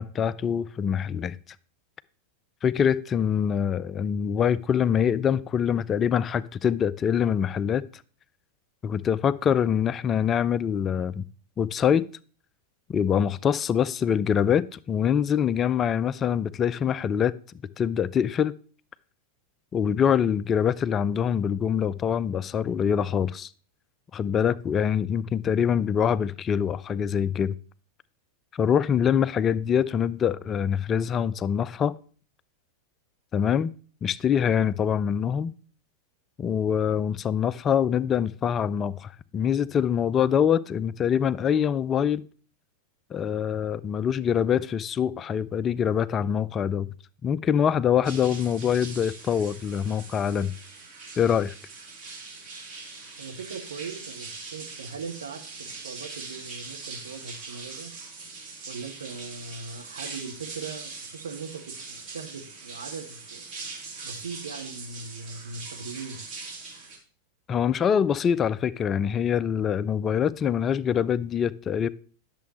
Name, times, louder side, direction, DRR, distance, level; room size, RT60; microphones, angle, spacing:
voice 1, 0.0-1.4 2.6-7.8 8.8-11.2 11.6-12.1 12.9-17.3 17.8-18.5 19.7-23.5 24.1-27.6 28.5-31.9 33.3-33.7 34.0-35.5 36.4-42.2 43.1-46.9 47.2-50.5 51.2-51.5 67.5-71.9, left 8 dB, 25° left, 0.3 m, -24 dB
sound 1, 48.0-67.0, right 4 dB, 35° right, 3.1 m, -41 dB
voice 2, 53.2-57.9 58.7-63.4 64.0-66.2, right 5 dB, 65° right, 1.1 m, -40 dB
10.0 x 6.9 x 3.0 m
figure-of-eight pair, 90°, 0 cm